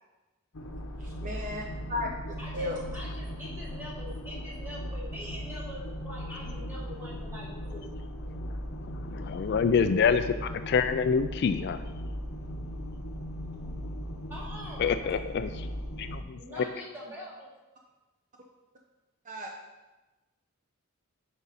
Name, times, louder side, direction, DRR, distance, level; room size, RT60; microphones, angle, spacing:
sound 1, 0.5-16.2, equal, 80° left, 0.9 m, -38 dB
voice 1, 1.0-1.6 1.9-2.8 19.2-19.5, left 2 dB, 35° right, 1 dB, 0.7 m, -35 dB
voice 2, 2.4-7.8 14.3-15.1 16.3-17.5, equal, 10° right, -6 dB, 2.6 m, -44 dB
voice 3, 9.1-11.8 14.8-15.7 16.0-16.6, left 6 dB, 50° left, 10 dB, 0.3 m, -26 dB
9.9 x 5.2 x 4.2 m, 1.1 s
head